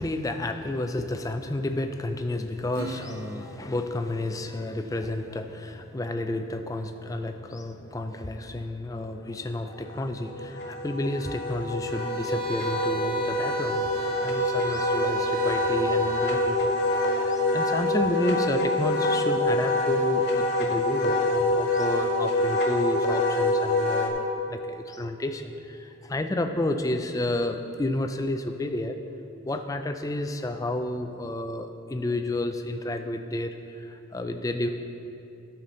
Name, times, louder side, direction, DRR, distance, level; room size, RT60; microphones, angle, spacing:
voice 1, 0.0-29.0 29.4-34.7, left 1 dB, 15° left, 6 dB, 0.3 m, -31 dB
Acoustic guitar / Strum, 2.7-5.6, right 4 dB, 85° right, 0.6 m, -43 dB
Wind instrument woodwind instrument, 9.7-24.1, left 2 dB, 55° left, 0.8 m, -26 dB
sound 1, 11.8-16.4, right 4 dB, 50° right, 1.0 m, -32 dB
12.5 x 5.8 x 3.8 m, 2.8 s
head